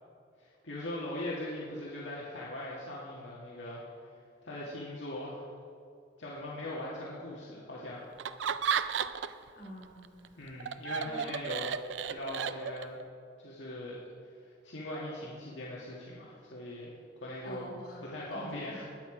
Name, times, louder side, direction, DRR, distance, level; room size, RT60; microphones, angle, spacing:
voice 1, 0.4-3.8 4.4-5.4 6.2-8.0 10.4-11.7 12.0-13.0 13.4-14.0 14.6-16.9 17.2-17.6 18.0-18.9, left 1 dB, 80° left, -5 dB, 1.7 m, -40 dB
Laughter, 8.2-9.5 9.8-13.0, right 7 dB, 75° right, 0.5 m, -33 dB
voice 2, 9.5-10.4 11.0-11.3 17.4-18.8, equal, 55° left, -4 dB, 3.9 m, -47 dB
20.0 x 7.6 x 4.9 m, 2.4 s
head